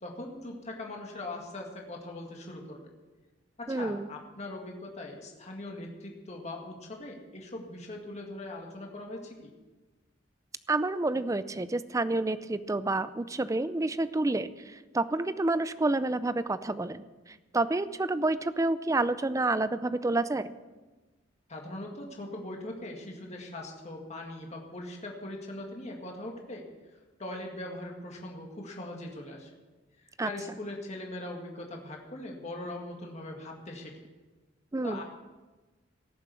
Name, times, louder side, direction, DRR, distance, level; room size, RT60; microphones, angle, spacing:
voice 1, 0.0-2.8 3.6-9.4 21.5-26.6 27.2-29.5 30.2-33.9 34.8-35.0, left 1 dB, 35° left, 0 dB, 2.0 m, -41 dB
voice 2, 3.7-4.1 10.7-17.0 17.5-20.5 30.2-30.3 34.7-35.0, right 2 dB, 15° right, 14 dB, 0.4 m, -29 dB
17.5 x 7.3 x 6.9 m, 1.2 s
head